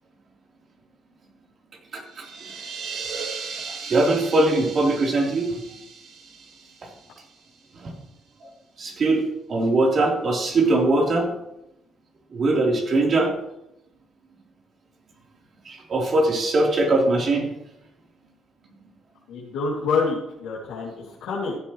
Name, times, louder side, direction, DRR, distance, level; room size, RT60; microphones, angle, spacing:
sound 1, 2.0-7.7, right 5 dB, 75° right, 2.4 m, -37 dB
voice 1, 3.6-5.4 7.8-7.9 8.8-9.2 9.5-11.3 12.3-13.3 15.7-17.4, right 2 dB, 50° right, -1 dB, 3.9 m, -21 dB
voice 2, 19.3-21.6, left 4 dB, 85° left, -7 dB, 2.8 m, -27 dB
15.0 x 10.5 x 3.2 m, 0.84 s
supercardioid pair, 75°, 0 cm